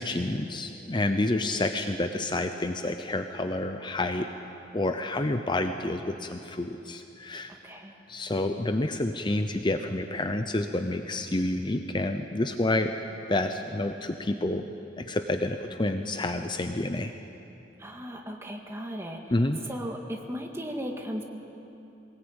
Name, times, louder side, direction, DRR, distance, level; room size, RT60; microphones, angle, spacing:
voice 1, 0.0-4.3 4.7-7.5 8.1-12.9 13.3-14.7 15.0-17.1 19.3-19.6, left 2 dB, 25° left, 7 dB, 0.7 m, -29 dB
voice 2, 17.8-19.3 19.7-21.2, equal, 15° right, 2 dB, 1.9 m, -36 dB
22.5 x 20.0 x 8.9 m, 2.9 s
head